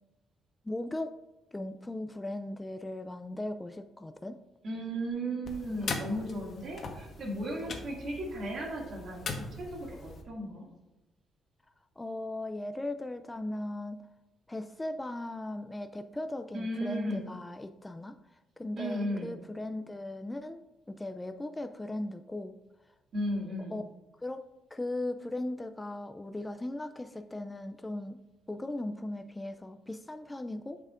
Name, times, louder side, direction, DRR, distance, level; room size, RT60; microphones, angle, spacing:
voice 1, 0.6-1.2 1.5-4.4 12.0-14.0 14.5-20.6 20.9-22.6 23.7-23.8 24.2-28.2 28.5-30.8, left 1 dB, 15° left, 8 dB, 0.3 m, -38 dB
voice 2, 4.6-9.2 9.6-10.7 16.5-17.2 18.8-19.3 23.1-23.8, right 1 dB, 60° right, -1 dB, 2.1 m, -35 dB
sound 1, 5.4-10.2, left 3 dB, 55° left, 1.1 m, -40 dB
8.7 x 6.5 x 2.5 m, 1.0 s
cardioid pair, 90°, 0 cm